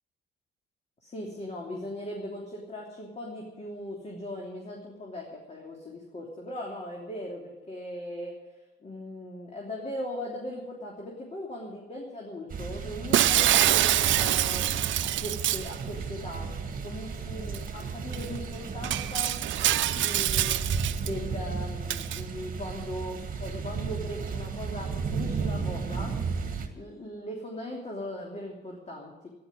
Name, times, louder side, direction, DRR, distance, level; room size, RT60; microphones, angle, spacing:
voice 1, 1.0-8.4 8.8-14.7 15.0-16.5 16.8-19.4 19.9-26.2 26.7-29.3, left 1 dB, 35° left, -1 dB, 3.1 m, -39 dB
sound 1, 12.5-26.7, right 5 dB, 45° right, 2.1 m, -34 dB
Shatter, 13.1-15.7 17.5-17.6 18.1-18.2 18.8-21.1 21.9-22.2, right 13 dB, 70° right, 0.6 m, -25 dB
12.5 x 11.0 x 9.2 m, 1.1 s
cardioid pair, 90°, 20 cm